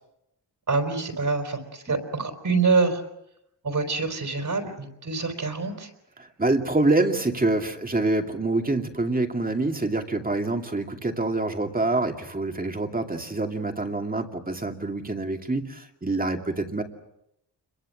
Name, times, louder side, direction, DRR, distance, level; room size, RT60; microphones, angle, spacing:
voice 1, 0.7-3.0 3.6-5.9, right 4 dB, 50° right, 5 dB, 4.3 m, -26 dB
voice 2, 6.2-16.8, right 2 dB, 20° right, 4 dB, 2.5 m, -26 dB
29.5 x 23.0 x 7.7 m, 0.84 s
wide cardioid pair, 130°, 42 cm